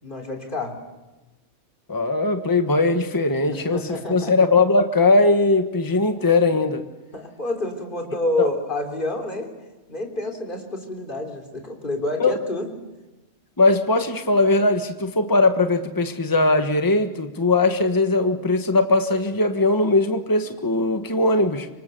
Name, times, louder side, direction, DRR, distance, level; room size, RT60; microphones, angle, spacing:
voice 1, 0.0-0.8 3.5-4.3 7.1-9.5 9.9-12.7, left 2 dB, 45° left, 3 dB, 3.7 m, -28 dB
voice 2, 1.9-6.8 8.4-8.5 12.2-12.4 13.6-21.7, left 2 dB, 20° left, 7 dB, 1.4 m, -20 dB
26.5 x 25.0 x 6.8 m, 1.1 s
omnidirectional pair, 1.2 m